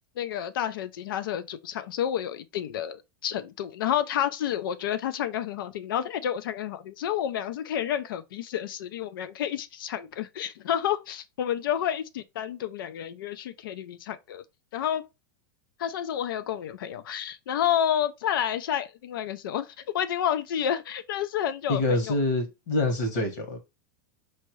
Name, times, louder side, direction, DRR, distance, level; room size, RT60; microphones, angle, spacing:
voice 1, 0.2-14.4 14.7-15.1 15.8-22.2, left 10 dB, 80° left, 0.4 m, -30 dB
voice 2, 21.7-23.6, left 2 dB, 60° left, 1.5 m, -26 dB
4.5 x 2.9 x 3.0 m
supercardioid pair, 165°, 11 cm